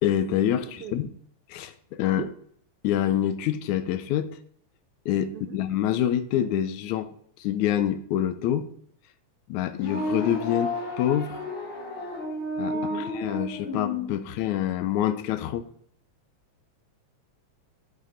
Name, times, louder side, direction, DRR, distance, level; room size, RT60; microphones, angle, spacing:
voice 1, 0.0-1.1 1.5-2.2 2.8-4.4 5.1-7.1 7.4-8.7 9.5-11.4 12.6-12.7 13.1-15.7, left 11 dB, 80° left, 2.0 m, -26 dB
voice 2, 0.6-1.0 2.1-2.3 5.3-5.6 12.7-13.1, right 8 dB, 80° right, 1.3 m, -38 dB
sound 1, 9.7-14.1, left 2 dB, 50° left, 2.6 m, -31 dB
9.3 x 5.2 x 5.6 m
omnidirectional pair, 3.4 m